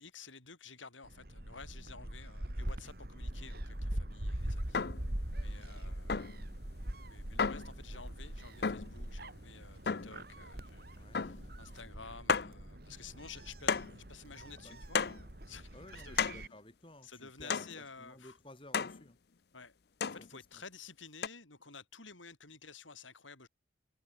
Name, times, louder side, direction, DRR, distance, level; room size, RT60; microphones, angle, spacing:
voice 1, 0.0-4.8 5.3-6.5 7.1-15.0 15.5-16.5 17.0-18.4 19.5-23.5, left 5 dB, 90° left, 7.5 m, -52 dB
Gull seagull, 1.0-16.5, right 1 dB, 55° right, 3.1 m, -42 dB
sound 1, 4.7-5.1 6.1-6.4 7.4-7.7 8.6-9.0 9.9-10.2 11.1-11.5 11.8-11.9 12.3-12.6 13.7-14.0 14.9-15.3 16.2-16.5 17.5-17.8 18.7-19.0 20.0-20.3 21.2-21.3, left 5 dB, 55° left, 0.6 m, -33 dB
voice 2, 5.6-5.9 11.0-11.2 14.6-14.8 15.7-17.7 18.0-19.2, left 1 dB, 25° left, 3.5 m, -55 dB
head